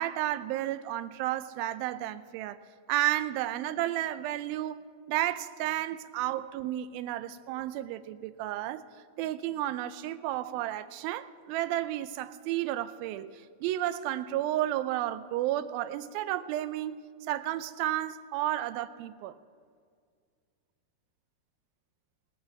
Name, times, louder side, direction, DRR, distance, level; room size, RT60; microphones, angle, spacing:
voice 1, 0.0-2.6 2.9-8.8 9.2-13.3 13.6-19.3, right 13 dB, 80° right, 2.3 m, -32 dB
21.5 x 17.5 x 3.4 m
omnidirectional pair, 4.6 m